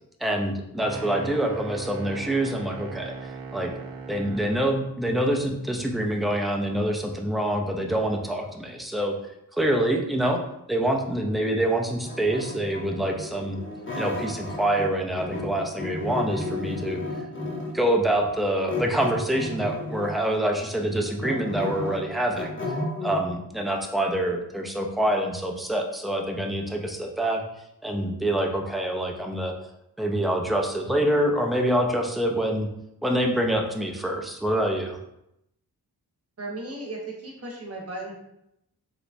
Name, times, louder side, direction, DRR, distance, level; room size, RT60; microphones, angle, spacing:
voice 1, 0.2-3.7 4.1-9.2 9.6-10.4 10.7-13.6 13.9-17.0 17.7-22.6 23.0-27.4 27.8-29.5 30.0-32.7 33.0-35.0, right 1 dB, ahead, 1 dB, 0.3 m, -26 dB
sound 1, 0.8-4.7, right 4 dB, 70° right, 0.5 m, -38 dB
sound 2, 12.0-14.9 15.1-17.8 18.7-20.3 20.7-23.2, left 2 dB, 30° left, 0.8 m, -33 dB
voice 2, 36.4-38.1, right 2 dB, 40° right, -1 dB, 0.9 m, -35 dB
3.2 x 3.0 x 2.5 m, 0.83 s
wide cardioid pair, 105°, 37 cm